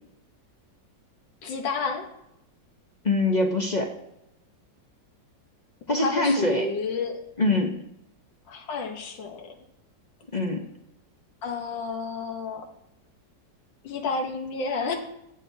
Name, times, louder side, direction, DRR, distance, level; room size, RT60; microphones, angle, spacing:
voice 1, 1.4-2.1 5.9-7.2 8.5-9.5 11.4-12.7 13.8-14.9, left 4 dB, 85° left, 3 dB, 1.8 m, -30 dB
voice 2, 3.0-3.9 5.9-6.7 7.4-7.7 10.3-10.6, left 2 dB, 40° left, 2 dB, 0.6 m, -23 dB
18.0 x 6.1 x 2.7 m, 0.84 s
omnidirectional pair, 1.9 m